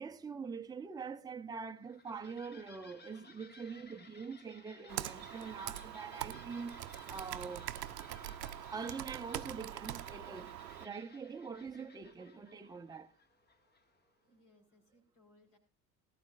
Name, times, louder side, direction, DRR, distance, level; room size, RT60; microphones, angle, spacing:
voice 1, 0.0-7.7 8.7-13.1, right 5 dB, 10° right, 0.8 m, -44 dB
sound 1, 1.6-14.1, left 4 dB, 20° left, 1.3 m, -59 dB
Computer keyboard, 4.9-10.9, right 12 dB, 75° right, 0.7 m, -43 dB
voice 2, 7.8-8.1 8.4-8.8 14.2-15.6, left 1 dB, 60° left, 4.9 m, -68 dB
19.0 x 12.5 x 2.5 m
figure-of-eight pair, 65°, 49 cm